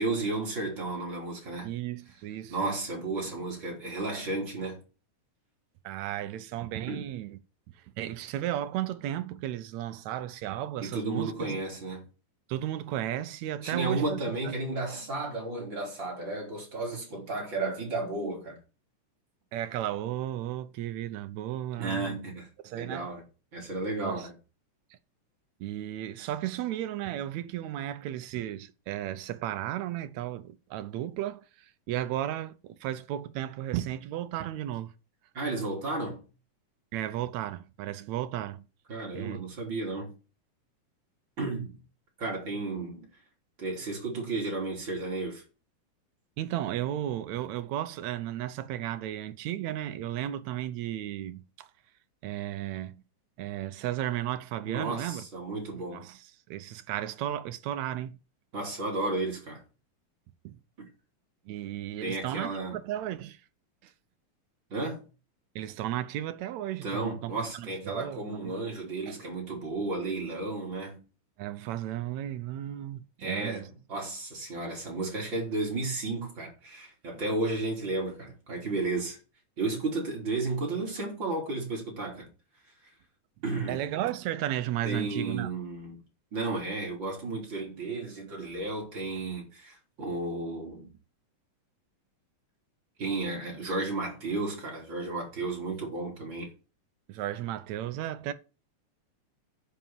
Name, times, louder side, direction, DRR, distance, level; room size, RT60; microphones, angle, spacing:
voice 1, 0.0-1.7 2.5-4.8 6.9-7.1 10.8-12.1 13.6-18.6 21.8-22.5 22.7-23.2 23.5-24.3 35.3-36.2 38.9-40.1 41.4-41.8 42.2-43.1 43.6-45.4 54.6-56.0 58.5-59.6 62.0-62.8 64.7-65.0 66.8-71.0 73.2-79.2 79.6-82.3 83.4-83.8 84.8-86.0 86.3-90.9 93.0-96.5, right 2 dB, 35° right, 4.3 m, -33 dB
voice 2, 1.6-2.8 5.8-7.4 7.8-11.6 12.5-14.5 19.5-22.2 22.6-23.1 24.0-24.3 25.6-34.9 36.9-38.6 39.1-39.4 46.4-51.7 52.2-53.0 53.4-55.2 55.9-58.2 60.4-60.6 61.5-63.4 63.8-63.9 65.6-68.5 69.1-69.2 71.4-73.7 83.7-85.5 97.1-98.3, right 12 dB, 75° right, 1.8 m, -34 dB
9.8 x 5.6 x 7.5 m
omnidirectional pair, 3.7 m